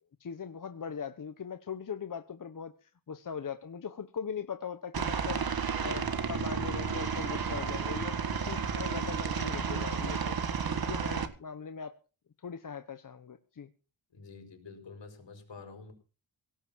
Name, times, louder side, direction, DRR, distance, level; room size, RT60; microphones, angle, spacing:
voice 1, 0.2-10.4 10.7-11.9 12.4-13.7, left 6 dB, 45° left, 9 dB, 1.0 m, -40 dB
Aircraft, 4.9-11.3, right 6 dB, 55° right, 1.8 m, -32 dB
voice 2, 14.1-15.9, left 4 dB, 75° left, 6 dB, 5.2 m, -48 dB
18.0 x 7.4 x 7.2 m, 0.36 s
wide cardioid pair, 135°, 44 cm